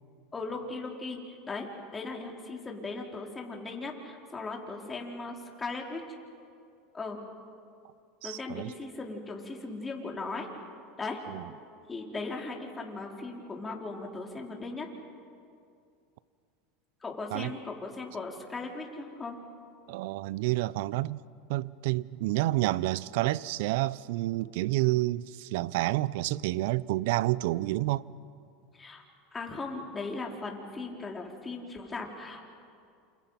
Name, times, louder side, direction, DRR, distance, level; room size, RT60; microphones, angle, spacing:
voice 1, 0.3-1.7 1.9-6.0 6.9-7.2 8.2-10.5 11.0-11.2 11.9-14.9 17.0-19.4 28.7-29.0 29.3-32.5, left 3 dB, 20° left, 4.8 m, -38 dB
voice 2, 8.2-8.7 11.3-11.4 17.3-17.5 19.9-21.2 21.5-28.0, right 18 dB, 70° right, 0.6 m, -29 dB
29.5 x 28.0 x 5.9 m
hypercardioid pair, 100°, 0 cm